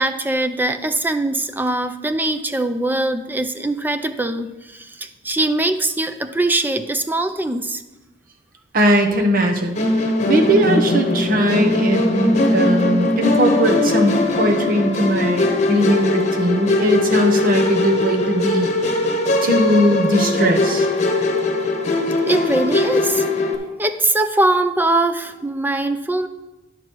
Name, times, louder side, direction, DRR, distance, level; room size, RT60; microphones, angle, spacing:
voice 1, 0.0-7.8 22.2-23.3 23.8-26.3, right 2 dB, 10° right, 9 dB, 0.4 m, -21 dB
voice 2, 8.7-9.7 10.0-18.7 19.4-20.9, equal, 50° right, 3 dB, 1.1 m, -19 dB
Musical instrument, 9.8-23.6, left 2 dB, 40° left, 1.1 m, -20 dB
9.7 x 6.0 x 4.6 m, 1.0 s
head